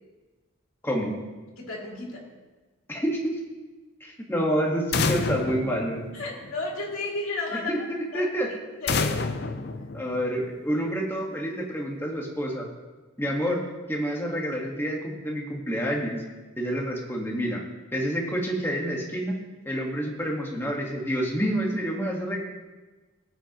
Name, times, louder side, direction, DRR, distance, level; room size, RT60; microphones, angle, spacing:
voice 1, 0.8-1.2 2.9-3.4 4.0-6.0 7.7-8.5 9.9-12.7 13.2-16.2 16.6-17.6 17.9-19.4 19.6-22.4, equal, 10° left, -1 dB, 1.5 m, -28 dB
voice 2, 1.6-2.2 6.1-7.9 8.1-8.2 8.8-9.2, left 2 dB, 90° left, -3 dB, 2.4 m, -32 dB
sound 1, 4.9-6.7 8.9-10.6, left 4 dB, 55° left, 0.6 m, -29 dB
17.0 x 8.0 x 3.0 m, 1.3 s
head